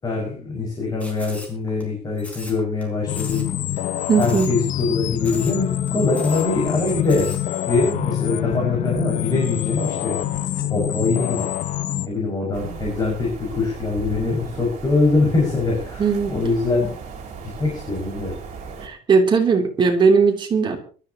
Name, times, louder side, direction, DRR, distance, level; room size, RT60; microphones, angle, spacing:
voice 1, 0.0-3.4 4.2-7.4 7.7-10.1 10.7-11.5 12.0-16.9 17.6-18.3, left 3 dB, 25° left, -1 dB, 6.1 m, -23 dB
sound 1, 1.0-1.8 2.2-2.8 3.1-3.5 3.8-3.9 4.2-4.5 4.8-4.9 5.2-5.6 5.9-6.0 6.1-6.5 6.9-7.4, equal, 10° left, 5.1 m, -40 dB
sound 2, 3.1-12.1, left 12 dB, 50° left, 0.7 m, -26 dB
voice 2, 4.1-4.5 16.0-16.3 18.8-20.8, right 5 dB, 30° right, 2 dB, 3.2 m, -18 dB
sound 3, 12.5-18.9, right 5 dB, 45° right, 4.9 m, -36 dB
24.5 x 13.5 x 3.0 m, 0.40 s
cardioid pair, 160°, 16 cm